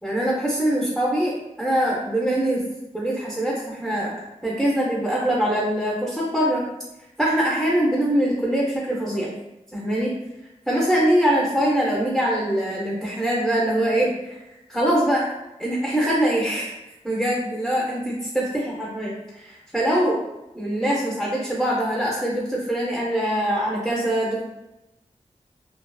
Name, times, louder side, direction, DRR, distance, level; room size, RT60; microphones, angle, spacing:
voice 1, 0.0-2.6 2.9-4.2 4.4-6.7 7.2-9.3 9.7-10.1 10.7-14.4 14.7-15.3 15.6-16.7 17.0-20.2 20.5-24.4, right 1 dB, 5° right, -5 dB, 0.6 m, -23 dB
2.4 x 2.4 x 2.2 m, 0.96 s
wide cardioid pair, 60°, 13 cm